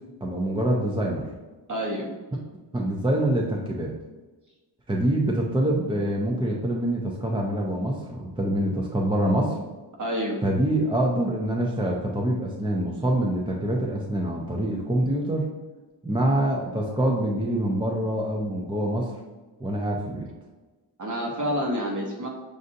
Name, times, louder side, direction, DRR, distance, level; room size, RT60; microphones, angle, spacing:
voice 1, 0.2-1.3 2.7-3.9 4.9-9.6 10.4-15.5 16.0-19.2 19.6-20.3, right 1 dB, 10° right, -1 dB, 0.3 m, -25 dB
voice 2, 1.7-2.1 10.0-10.4 21.0-22.3, equal, 40° right, -1 dB, 1.0 m, -28 dB
6.3 x 2.6 x 2.5 m, 1.2 s
wide cardioid pair, 150°, 45 cm